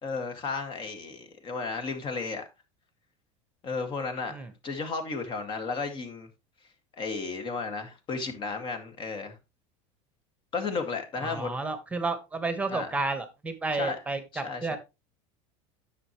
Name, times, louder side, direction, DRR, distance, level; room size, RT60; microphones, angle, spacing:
voice 1, 0.0-2.4 3.6-4.4 4.6-6.3 7.0-9.4 10.5-11.5 12.7-13.0 13.7-14.0 14.3-14.8, left 4 dB, 35° left, 2.1 m, -33 dB
voice 2, 11.2-14.8, right 3 dB, 10° right, 1.4 m, -31 dB
10.0 x 7.4 x 3.1 m
supercardioid pair, 135°, 15 cm